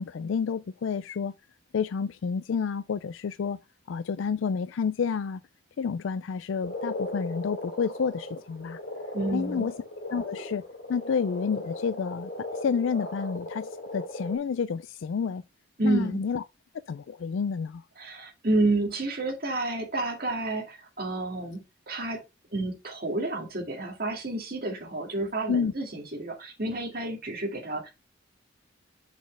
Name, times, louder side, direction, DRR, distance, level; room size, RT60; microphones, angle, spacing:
voice 1, 0.0-1.3 1.7-3.6 3.9-5.4 5.8-8.8 9.3-9.7 10.1-10.6 10.9-12.3 12.6-15.4 15.8-16.4 16.9-17.8 25.5-25.7, left 6 dB, 80° left, 0.4 m, -29 dB
Frog, 6.6-14.4, left 1 dB, 50° left, 3.2 m, -37 dB
voice 2, 9.1-9.7 15.8-16.2 18.0-22.2 22.5-27.9, right 2 dB, 50° right, 2.2 m, -30 dB
6.3 x 6.2 x 3.2 m
head